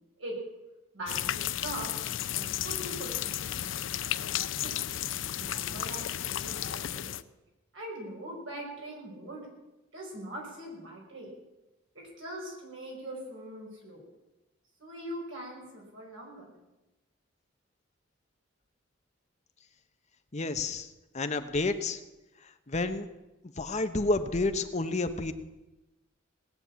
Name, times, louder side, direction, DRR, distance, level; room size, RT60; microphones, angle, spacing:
voice 1, 0.9-1.9 2.3-3.7 4.3-4.7 5.3-7.1 7.7-9.5 9.9-11.3 11.9-14.0 14.8-16.5, right 1 dB, 70° right, -1 dB, 5.3 m, -42 dB
sound 1, 1.1-7.2, left 11 dB, 65° left, 0.5 m, -33 dB
voice 2, 20.3-20.9 21.1-22.0 22.7-23.1 23.6-25.3, left 2 dB, 35° left, 8 dB, 1.0 m, -29 dB
18.5 x 7.5 x 8.4 m, 1.0 s
head